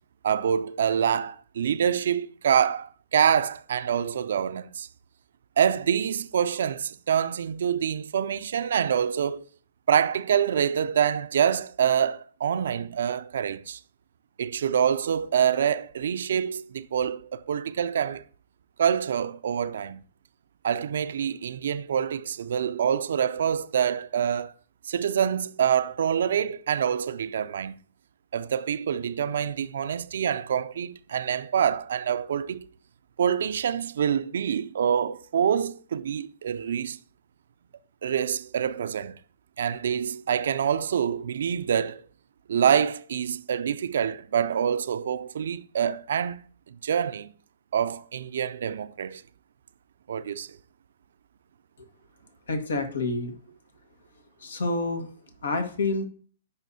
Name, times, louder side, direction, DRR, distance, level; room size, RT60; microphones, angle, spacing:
voice 1, 0.2-4.9 5.6-9.4 9.9-13.8 14.4-18.2 18.8-20.0 20.6-24.5 24.8-27.8 28.3-32.6 33.2-37.0 38.0-39.2 39.6-42.0 42.5-46.4 46.7-47.3 47.7-49.2 50.1-50.6, right 8 dB, 65° right, 0.5 m, -26 dB
voice 2, 52.5-53.3 54.4-55.1 55.4-56.1, left 2 dB, 75° left, 1.6 m, -28 dB
15.0 x 5.8 x 2.8 m
figure-of-eight pair, 120°, 0 cm